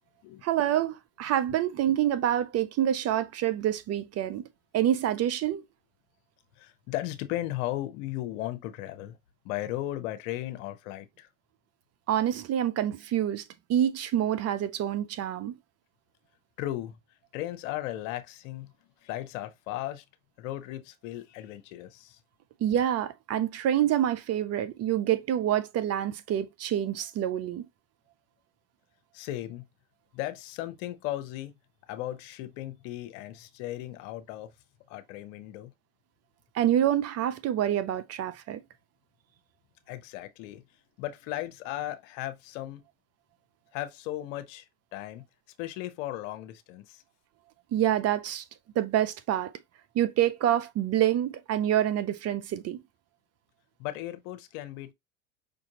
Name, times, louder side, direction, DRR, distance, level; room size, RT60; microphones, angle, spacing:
voice 1, 0.4-4.5 4.7-5.6 12.1-13.4 13.7-15.6 22.6-27.6 36.5-38.6 47.7-48.4 48.8-49.5 49.9-52.8, right 11 dB, 40° right, 0.6 m, -27 dB
voice 2, 6.6-9.2 9.4-11.3 16.6-17.0 17.3-18.7 19.0-20.0 20.4-22.2 29.1-29.6 30.1-31.5 31.9-34.5 34.9-35.7 39.9-40.6 41.0-42.8 43.7-45.2 45.6-47.0 53.8-54.9, left 14 dB, 65° left, 0.9 m, -36 dB
5.2 x 2.6 x 2.8 m
hypercardioid pair, 80°, 40 cm